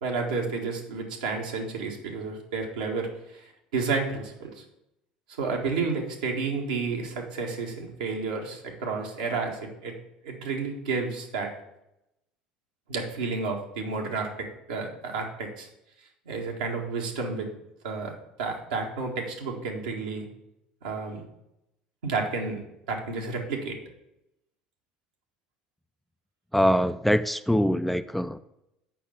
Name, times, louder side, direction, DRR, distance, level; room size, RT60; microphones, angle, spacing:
voice 1, 0.0-4.6 5.4-9.9 10.2-11.5 12.9-15.7 16.3-17.5 17.8-18.1 18.4-20.3 20.8-21.2 22.0-22.6 22.9-23.8, right 4 dB, 80° right, 0 dB, 1.7 m, -31 dB
voice 2, 26.5-28.4, equal, 5° left, 11 dB, 0.4 m, -23 dB
6.7 x 5.4 x 6.6 m, 0.85 s
hypercardioid pair, 70°, 4 cm